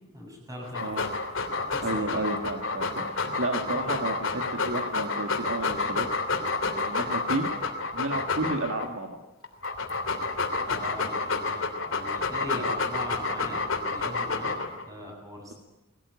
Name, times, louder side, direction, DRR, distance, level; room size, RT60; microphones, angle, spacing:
voice 1, 0.1-1.1 1.7-2.3 10.6-14.6 14.9-15.5, left 1 dB, 15° right, 0 dB, 7.7 m, -41 dB
Dog, 0.6-8.9 9.4-14.8, left 3 dB, 60° left, 3.2 m, -29 dB
voice 2, 1.8-6.1 6.9-7.5 7.9-9.2 12.4-12.7, right 2 dB, 60° right, 4 dB, 1.8 m, -32 dB
21.5 x 17.5 x 9.7 m, 1.0 s
head